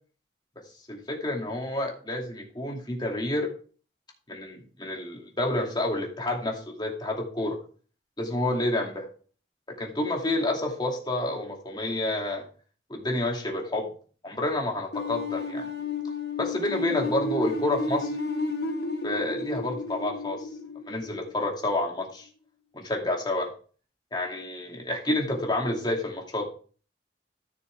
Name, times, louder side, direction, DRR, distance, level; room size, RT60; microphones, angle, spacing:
voice 1, 0.9-3.5 4.3-7.6 8.2-9.1 9.8-12.4 12.9-13.9 14.2-15.7 16.4-18.2 19.0-20.5 20.9-22.3 22.7-23.5 24.1-26.5, left 1 dB, 25° left, 0 dB, 2.5 m, -29 dB
sound 1, 14.9-21.8, left 3 dB, 60° left, 1.5 m, -32 dB
13.5 x 6.5 x 3.5 m, 0.40 s
head